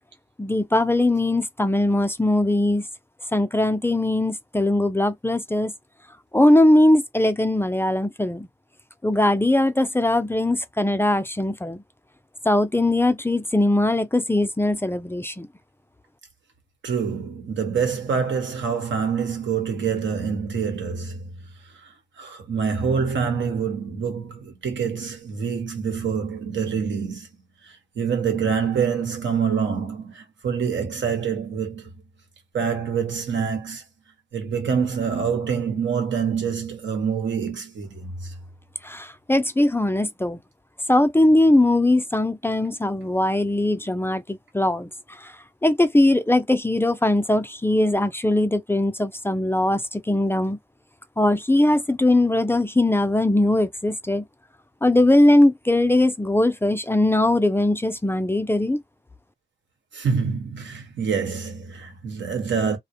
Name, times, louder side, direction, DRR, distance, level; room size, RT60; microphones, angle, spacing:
voice 1, 0.4-2.9 3.3-5.7 6.3-8.5 9.0-11.8 12.4-15.5 38.8-40.4 40.9-45.4 45.6-50.6 51.2-54.2 54.8-58.8, left 1 dB, 10° left, 0.4 m, -20 dB
voice 2, 16.8-21.3 22.2-27.3 28.0-31.9 32.5-33.8 34.3-38.3 59.9-62.8, right 6 dB, 90° right, 1.1 m, -26 dB
2.4 x 2.1 x 2.8 m
cardioid pair, 55°, 19 cm